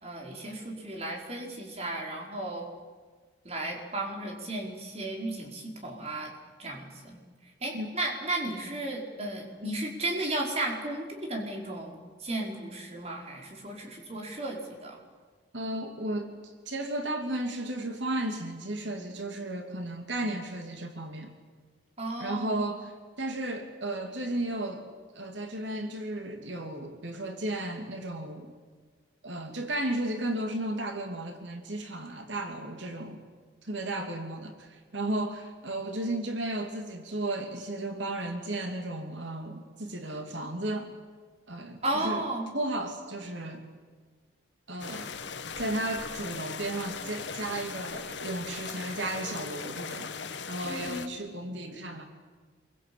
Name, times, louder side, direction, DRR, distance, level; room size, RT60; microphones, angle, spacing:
voice 1, 0.0-2.7 3.4-6.3 6.6-7.2 7.6-15.0 22.0-22.7 41.8-42.5 50.7-51.2, right 2 dB, 35° right, 1 dB, 4.9 m, -34 dB
voice 2, 15.5-21.3 22.2-24.9 25.1-28.5 29.2-33.2 33.6-40.9 41.5-42.2 42.5-43.6 44.7-45.2 45.6-50.1 50.5-52.0, right 1 dB, 90° right, 4 dB, 2.9 m, -34 dB
sound 1, 44.8-51.1, left 5 dB, 80° left, 1.6 m, -39 dB
26.5 x 23.5 x 8.7 m, 1.4 s
head